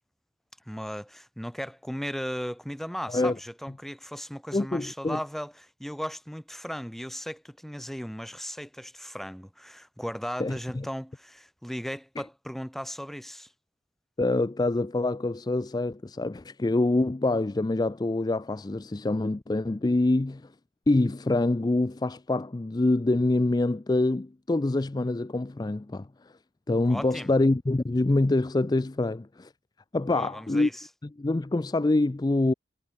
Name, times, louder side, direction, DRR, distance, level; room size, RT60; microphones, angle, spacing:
voice 1, 0.7-13.5 26.9-27.3 30.1-30.9, equal, ahead, 1.6 m, -36 dB
voice 2, 4.5-5.2 10.4-10.9 14.2-20.5 20.9-26.1 26.7-29.5 29.9-30.7 31.2-32.5, left 2 dB, 20° left, 0.4 m, -25 dB
head